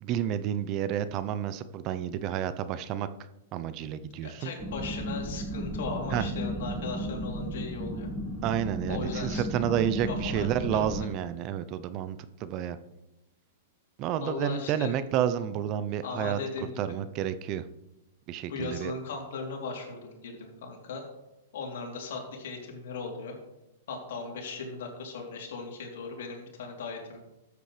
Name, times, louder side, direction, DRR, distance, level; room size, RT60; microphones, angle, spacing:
voice 1, 0.0-3.1 3.5-4.5 6.1-6.2 8.4-12.8 14.0-16.4 16.8-17.6 18.3-18.9, right 10 dB, 40° right, 13 dB, 0.6 m, -30 dB
voice 2, 4.2-8.1 8.9-9.4 10.0-11.1 14.2-14.9 16.0-16.9 18.5-21.0 21.5-23.4 23.9-27.2, left 4 dB, 70° left, 0 dB, 3.3 m, -37 dB
sound 1, 4.6-11.0, equal, 5° right, 1.3 m, -34 dB
13.0 x 8.2 x 3.3 m, 0.94 s
hypercardioid pair, 125°, 0 cm